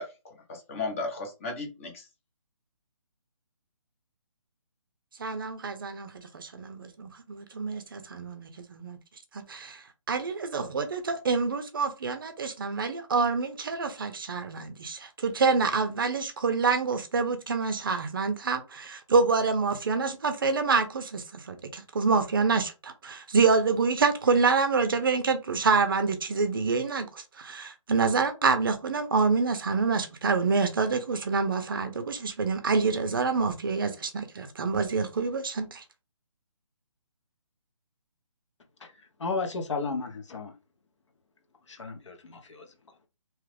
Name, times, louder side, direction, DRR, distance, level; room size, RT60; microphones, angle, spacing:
voice 1, 0.0-2.1, left 3 dB, 25° left, 0.9 m, -35 dB
voice 2, 5.2-9.0 9.3-9.8 10.1-35.8, right 4 dB, 40° right, 0.5 m, -27 dB
voice 3, 38.8-40.5 41.7-43.1, left 4 dB, 60° left, 1.0 m, -34 dB
2.9 x 2.3 x 3.3 m
hypercardioid pair, 165°, 17 cm